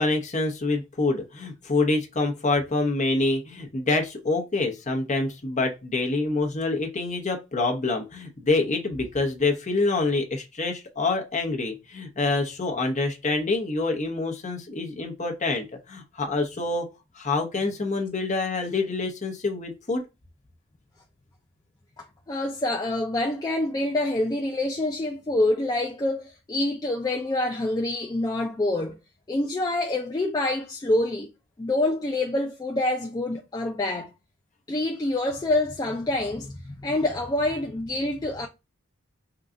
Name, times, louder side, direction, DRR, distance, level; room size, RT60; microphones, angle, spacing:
voice 1, 0.0-16.9 17.2-20.0, left 3 dB, 35° left, 0.8 m, -26 dB
voice 2, 22.0-29.0 29.3-31.3 31.6-34.1 34.7-38.5, left 2 dB, 15° left, 0.3 m, -26 dB
3.8 x 2.3 x 3.6 m
head